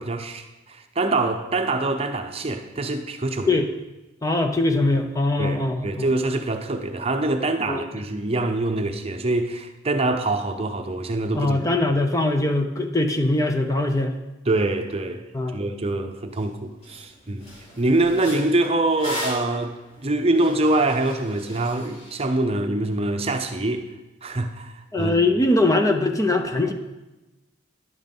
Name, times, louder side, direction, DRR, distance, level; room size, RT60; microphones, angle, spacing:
voice 1, 0.0-3.6 5.4-11.6 14.4-15.3 15.5-17.5 17.8-23.9 24.2-25.2 26.7-26.8, right 2 dB, 30° right, 0.7 m, -24 dB
voice 2, 4.2-6.1 7.7-7.9 11.3-14.1 15.3-15.6 24.9-26.7, left 2 dB, 15° left, 0.6 m, -22 dB
sound 1, 16.4-16.5 16.8-17.0 17.4-22.1, equal, 30° left, 4.5 m, -37 dB
11.0 x 7.9 x 5.4 m
head